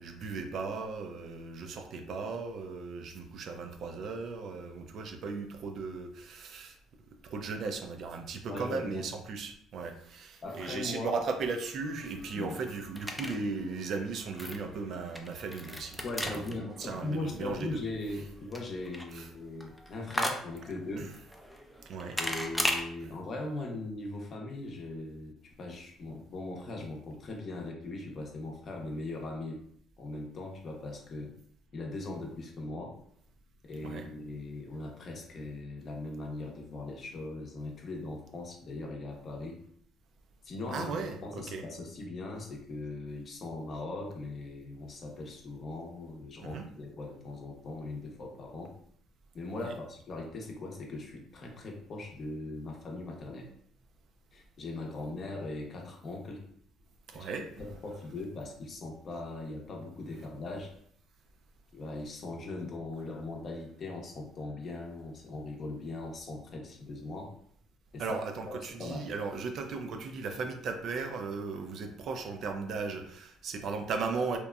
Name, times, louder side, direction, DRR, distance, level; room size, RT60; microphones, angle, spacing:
voice 1, 0.0-6.8 7.2-17.8 19.1-19.3 21.0-21.1 21.9-22.2 33.8-34.1 40.7-41.6 46.4-46.6 49.6-49.7 57.1-57.5 68.0-74.4, right 4 dB, 60° right, 5 dB, 0.4 m, -37 dB
voice 2, 8.5-9.1 10.4-11.2 12.3-12.6 16.0-21.1 22.2-29.6 30.0-31.3 31.7-32.9 33.6-39.6 40.4-48.7 49.3-53.5 54.3-56.4 57.1-57.2 57.6-60.7 61.7-67.3 67.9-69.1, left 2 dB, 50° left, 1 dB, 0.6 m, -40 dB
sound 1, 11.6-22.8, equal, 5° left, 0.4 m, -38 dB
2.8 x 2.1 x 2.3 m, 0.64 s
supercardioid pair, 75°, 0 cm